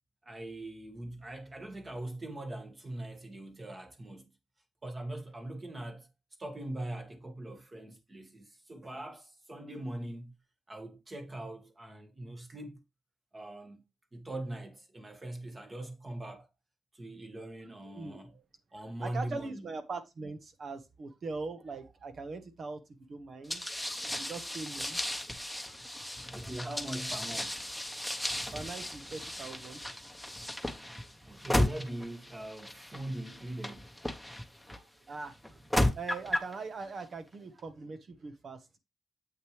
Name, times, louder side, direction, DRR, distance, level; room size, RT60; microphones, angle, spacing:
voice 1, 0.2-4.3 4.8-6.1 6.4-10.3 10.7-12.8 13.3-13.8 14.1-16.5 16.9-18.4 18.7-19.7 26.3-27.6 31.2-34.0, right 1 dB, 25° right, 1.9 m, -41 dB
voice 2, 19.0-22.8 23.1-23.8 24.1-25.2 25.6-26.2 28.2-30.0 31.0-31.1 34.7-35.6 35.9-38.8, right 4 dB, 55° right, 1.4 m, -42 dB
sound 1, 23.5-34.8 35.4-36.5, left 1 dB, ahead, 1.1 m, -35 dB
8.2 x 6.4 x 3.3 m
wide cardioid pair, 125°, 0 cm